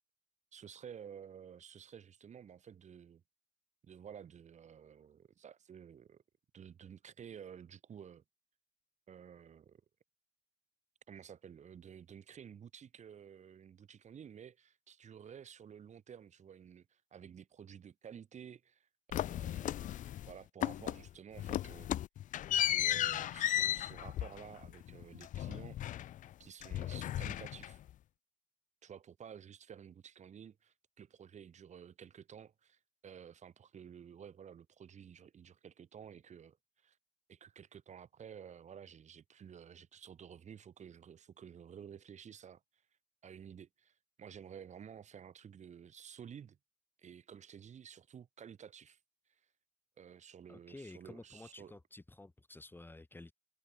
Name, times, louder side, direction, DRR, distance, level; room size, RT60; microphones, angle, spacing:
voice 1, 0.5-3.2 3.8-6.2 6.5-8.2 9.1-9.8 11.1-19.9 20.2-21.9 22.5-25.8 26.4-27.8 28.8-37.0 37.3-42.6 43.2-46.6 47.0-49.0 49.3-49.4 50.0-51.8, right 8 dB, 45° right, 3.1 m, -52 dB
sound 1, 19.1-20.3 20.6-21.1 21.4-26.3 26.6-27.9, left 12 dB, 50° left, 0.4 m, -35 dB
voice 2, 50.5-53.3, left 2 dB, 10° left, 1.9 m, -52 dB
cardioid pair, 110°, 17 cm